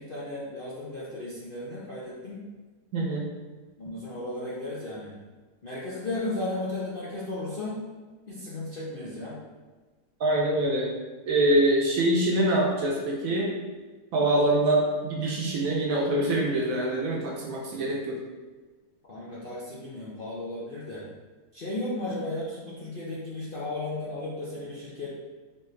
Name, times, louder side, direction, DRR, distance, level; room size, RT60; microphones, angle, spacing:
voice 1, 0.0-2.4 3.8-5.1 5.6-7.8 8.3-9.4 19.1-21.0 21.5-25.1, left 2 dB, 50° left, -7 dB, 0.7 m, -35 dB
voice 2, 2.9-3.3 10.2-10.9 11.3-13.5 14.1-18.2, right 1 dB, 65° right, -2 dB, 1.0 m, -24 dB
4.4 x 3.8 x 3.2 m, 1.3 s
omnidirectional pair, 1.8 m